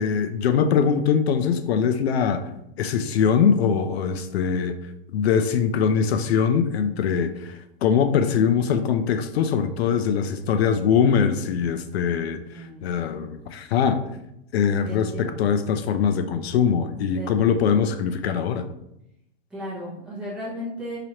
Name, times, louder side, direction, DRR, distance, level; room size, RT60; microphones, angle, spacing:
voice 1, 0.0-2.4 2.8-4.8 5.1-14.0 14.5-18.7, left 7 dB, 85° left, 9 dB, 0.5 m, -22 dB
voice 2, 12.5-13.3 14.9-15.5 17.1-17.4 19.5-21.0, equal, 5° right, -9 dB, 0.5 m, -35 dB
4.8 x 2.9 x 2.8 m, 0.83 s
supercardioid pair, 175°, 30 cm